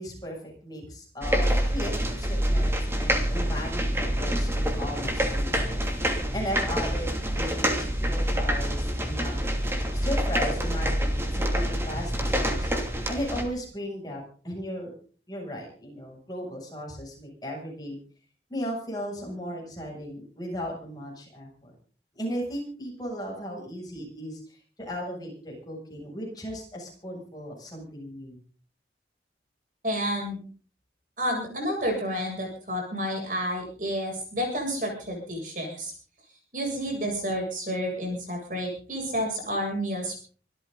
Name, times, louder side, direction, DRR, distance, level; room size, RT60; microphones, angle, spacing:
voice 1, 0.0-5.9 6.3-9.4 9.9-12.7 13.1-14.9 15.3-18.0 18.5-21.7 22.1-28.4, equal, 20° left, -1 dB, 7.6 m, -36 dB
sound 1, 1.2-13.4, equal, 15° right, 2.8 m, -26 dB
voice 2, 29.8-30.4 31.2-35.9 36.5-40.2, equal, 45° right, 1 dB, 7.7 m, -30 dB
25.5 x 13.5 x 4.1 m, 0.43 s
head